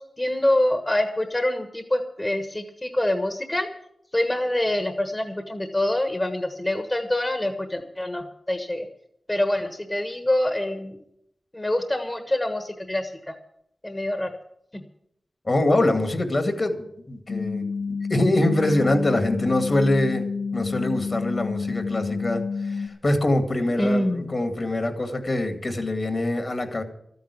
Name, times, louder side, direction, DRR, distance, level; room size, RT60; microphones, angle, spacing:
voice 1, 0.2-3.7 4.1-8.9 9.3-11.0 11.5-13.3 13.8-14.3 14.7-14.8 23.8-24.3, left 1 dB, 25° left, 6 dB, 1.4 m, -25 dB
voice 2, 15.5-20.3 20.5-26.8, left 1 dB, 45° left, 6 dB, 2.2 m, -24 dB
sound 1, 17.3-22.9, left 4 dB, 65° left, 1.9 m, -29 dB
13.0 x 9.4 x 8.4 m, 0.74 s
wide cardioid pair, 65°, 0 cm